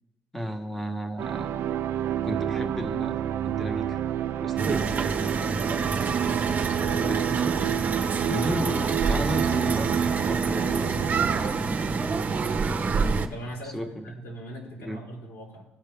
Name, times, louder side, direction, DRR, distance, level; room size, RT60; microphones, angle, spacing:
voice 1, 0.3-1.5 2.2-4.0 4.4-4.9 7.0-7.6 8.3-10.9 13.7-14.1 14.8-15.0, equal, 5° left, 5 dB, 1.2 m, -33 dB
sound 1, 1.2-11.5, right 9 dB, 65° right, 0.4 m, -29 dB
sound 2, 4.6-13.3, right 4 dB, 40° right, 0.8 m, -27 dB
voice 2, 13.3-15.7, right 1 dB, 75° left, -2 dB, 3.3 m, -41 dB
16.0 x 5.5 x 3.5 m, 1.1 s
cardioid pair, 105°, 4 cm